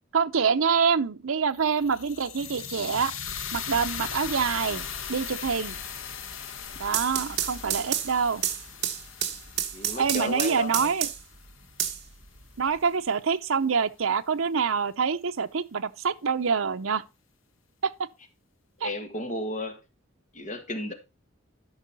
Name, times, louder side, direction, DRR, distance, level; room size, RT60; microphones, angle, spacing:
voice 1, 0.1-3.1 3.5-5.8 6.8-8.4 10.0-11.1 12.6-17.0 17.8-17.9 18.8-18.9, right 6 dB, 80° right, 0.7 m, -26 dB
sound 1, 1.5-11.7, left 7 dB, 70° left, 1.3 m, -38 dB
sound 2, 6.7-11.4 11.8-12.8, right 10 dB, 50° right, 1.5 m, -30 dB
voice 2, 9.7-10.9 18.8-19.8 20.3-20.9, left 1 dB, 35° left, 1.6 m, -33 dB
12.5 x 5.5 x 4.0 m
head